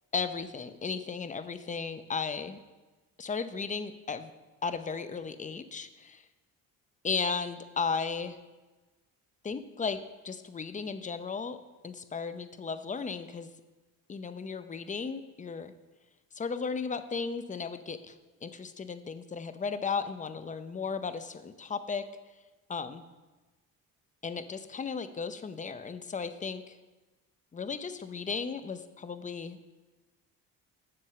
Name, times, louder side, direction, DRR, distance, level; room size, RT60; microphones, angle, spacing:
voice 1, 0.1-2.6 3.2-4.3 4.6-6.2 7.0-8.4 9.4-10.0 10.2-11.6 11.8-13.5 14.1-15.7 16.3-18.1 18.4-22.0 22.7-23.0 24.2-26.8 27.5-29.7, left 5 dB, 20° left, 11 dB, 0.6 m, -35 dB
7.5 x 7.5 x 6.8 m, 1.2 s
cardioid pair, 115°, 36 cm